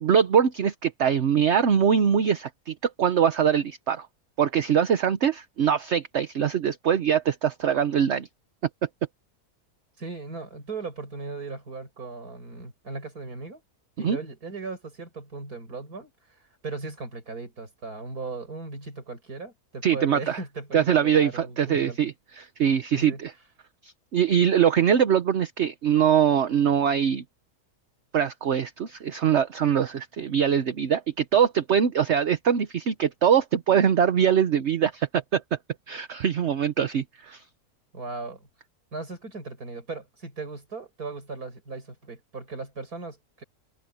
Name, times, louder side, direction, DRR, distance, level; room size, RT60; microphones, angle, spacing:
voice 1, 0.0-4.1 4.4-8.3 14.0-14.2 19.8-20.4 20.7-23.3 23.8-27.2 28.1-35.6 35.9-37.4, right 8 dB, 50° right, 1.1 m, -23 dB
voice 2, 10.0-13.6 14.0-16.1 16.6-22.0 22.9-23.2 37.9-38.5 38.9-43.4, right 3 dB, 70° right, 6.1 m, -37 dB
open air
omnidirectional pair, 1.7 m